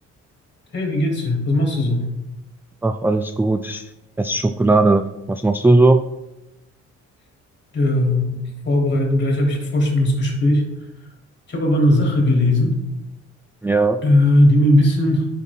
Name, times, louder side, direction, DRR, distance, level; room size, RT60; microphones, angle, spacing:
voice 1, 0.7-2.1 7.7-10.6 11.5-12.7 14.0-15.3, left 1 dB, 35° left, -1 dB, 3.3 m, -18 dB
voice 2, 2.8-3.9 4.2-6.0 13.6-14.0, right 2 dB, 5° right, 8 dB, 0.3 m, -17 dB
10.0 x 5.6 x 3.7 m, 0.95 s
cardioid pair, 90°, 30 cm